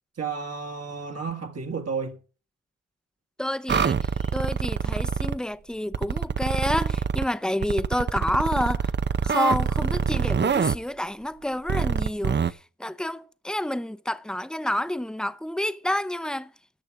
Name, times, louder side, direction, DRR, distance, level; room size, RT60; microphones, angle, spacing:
voice 1, 0.2-2.2, right 5 dB, 55° right, 1.9 m, -32 dB
voice 2, 3.4-8.9 9.2-16.5, left 1 dB, 5° left, 0.8 m, -29 dB
sound 1, 3.7-5.4 5.9-7.2 7.6-10.8 11.7-12.5, right 6 dB, 35° right, 0.7 m, -25 dB
13.5 x 8.8 x 4.7 m
cardioid pair, 95°, 29 cm